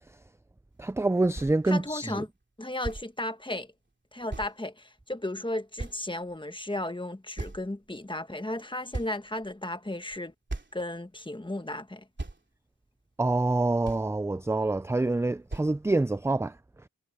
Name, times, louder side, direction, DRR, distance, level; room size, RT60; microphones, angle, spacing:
voice 1, 0.8-2.2 13.2-16.5, right 2 dB, 10° right, 0.4 m, -26 dB
sound 1, 1.3-1.6 2.4-2.5 2.8-3.1 4.3-4.6 5.2-5.3 5.8-6.4 7.4-8.0 8.5-8.6 8.9-9.5 10.1-10.2 10.5-10.8 11.7-11.8 12.2-12.4 13.4-13.5 13.8-14.2 15.1-15.2 15.5-15.7, right 2 dB, 30° right, 3.0 m, -37 dB
voice 2, 1.6-2.3 2.6-3.7 4.1-10.3 10.7-12.0, left 1 dB, 15° left, 1.4 m, -34 dB
cardioid pair, 55°, 37 cm